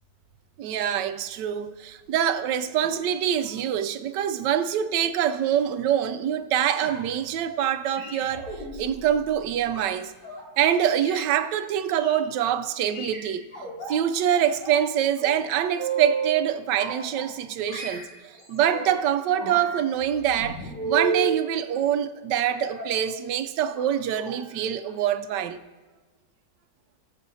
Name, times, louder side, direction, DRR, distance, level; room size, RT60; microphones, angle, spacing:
voice 1, 0.6-8.5 8.7-10.1 10.6-13.5 13.9-25.6, right 9 dB, 80° right, 1.2 m, -25 dB
sound 1, 6.6-7.2 7.9-10.4 10.9-11.2 11.9-12.2 12.8-13.9 14.3-14.9 15.2-16.4 16.8-17.4 17.7-19.0 19.3-21.4 22.6-23.0 23.7-23.9 24.1-24.4 24.7-24.9 25.2-25.3, right 5 dB, 70° left, 4.2 m, -34 dB
19.0 x 7.3 x 2.7 m
omnidirectional pair, 1.9 m